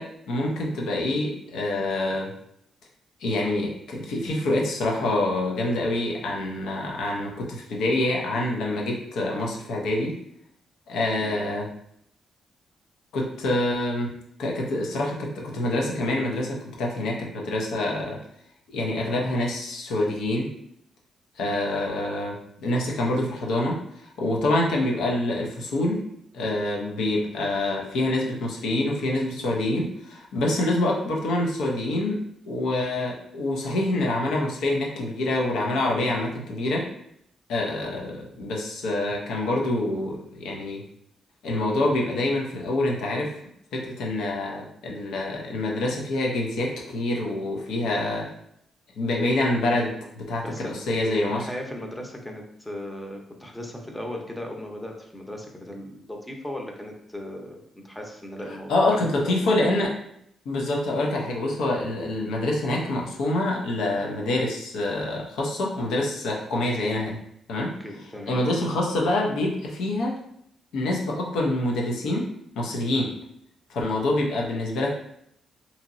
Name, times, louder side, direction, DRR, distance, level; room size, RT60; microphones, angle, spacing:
voice 1, 0.0-2.3 3.2-10.2 10.9-11.7 13.1-14.1 14.4-18.2 18.7-20.5 21.4-26.0 26.3-32.2 32.4-36.9 37.5-40.8 41.4-43.3 43.7-48.3 49.0-51.5 58.7-60.0 60.5-67.2 67.5-67.7 68.3-70.2 70.7-72.3 72.6-73.2 73.7-75.0, left 1 dB, 85° left, -1 dB, 0.6 m, -26 dB
voice 2, 50.4-50.9 51.3-59.4 67.8-68.4, left 1 dB, 10° left, 2 dB, 0.6 m, -37 dB
2.8 x 2.8 x 2.6 m, 0.73 s
cardioid pair, 75°, 0 cm